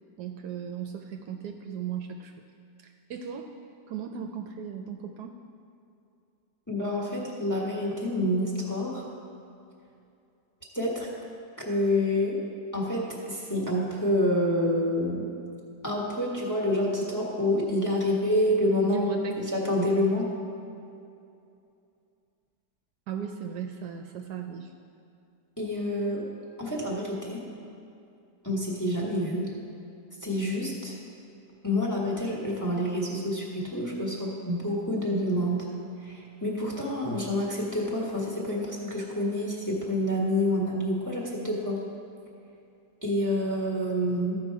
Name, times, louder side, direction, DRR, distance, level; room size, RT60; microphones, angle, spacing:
voice 1, 0.2-2.5 2.8-3.5 3.9-5.3 18.8-19.5 23.1-24.7, right 8 dB, 75° right, 5 dB, 1.0 m, -37 dB
voice 2, 6.7-9.1 10.7-11.1 11.6-12.4 12.7-15.3 15.8-20.3 25.6-26.2 26.6-27.4 28.4-29.5 30.2-30.9 31.6-35.7 36.0-41.8 43.0-44.4, left 1 dB, 10° left, -3 dB, 1.1 m, -28 dB
14.0 x 5.3 x 4.6 m, 2.6 s
omnidirectional pair, 1.9 m